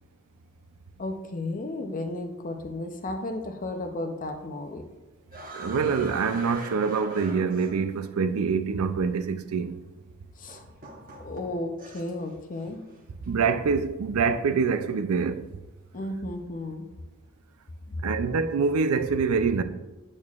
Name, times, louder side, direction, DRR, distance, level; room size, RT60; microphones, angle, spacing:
voice 1, 1.0-4.9 10.4-10.6 11.2-12.8 15.9-16.9 17.9-18.0, left 2 dB, 40° left, 0.6 m, -33 dB
sound 1, 5.3-8.1 9.2-9.3 10.5-12.3 12.6-13.0, right 1 dB, 40° right, 1.0 m, -42 dB
voice 2, 5.5-9.8 13.3-15.5 18.0-19.6, right 5 dB, 75° right, 0.4 m, -25 dB
8.6 x 6.4 x 2.4 m
head